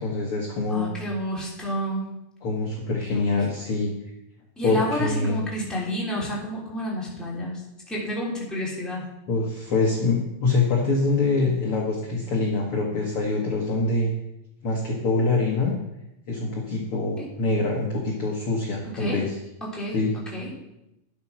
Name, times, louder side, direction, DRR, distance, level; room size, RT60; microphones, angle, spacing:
voice 1, 0.0-0.9 2.4-3.9 4.6-5.5 9.3-14.1 14.6-15.7 16.3-19.3 19.9-20.1, left 3 dB, 55° left, -1 dB, 1.6 m, -24 dB
voice 2, 0.7-2.1 3.1-3.7 4.6-7.6 7.9-9.1 17.2-17.3 18.8-19.2 19.6-20.5, equal, ahead, -5 dB, 2.8 m, -30 dB
11.5 x 8.4 x 6.0 m, 0.90 s
omnidirectional pair, 4.4 m